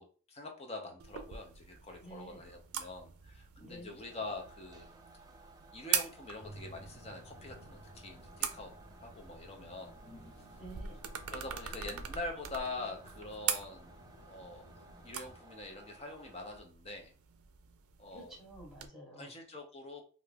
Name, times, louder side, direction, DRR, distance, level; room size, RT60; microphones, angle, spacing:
voice 1, 0.0-4.9 5.7-8.7 9.0-10.0 11.3-14.0 14.3-14.7 15.0-17.1 18.0-18.4 19.2-20.0, left 2 dB, 30° left, 3 dB, 0.6 m, -44 dB
sound 1, 1.0-18.9, right 8 dB, 90° right, 0.4 m, -43 dB
voice 2, 2.0-2.4 3.6-4.0 10.6-11.0 18.1-19.3, right 1 dB, ahead, -4 dB, 1.0 m, -50 dB
sound 2, 4.0-16.6, right 2 dB, 20° right, 0.3 m, -59 dB
sound 3, 6.4-15.4, equal, 80° left, 1.2 m, -55 dB
2.6 x 2.3 x 3.3 m, 0.39 s
head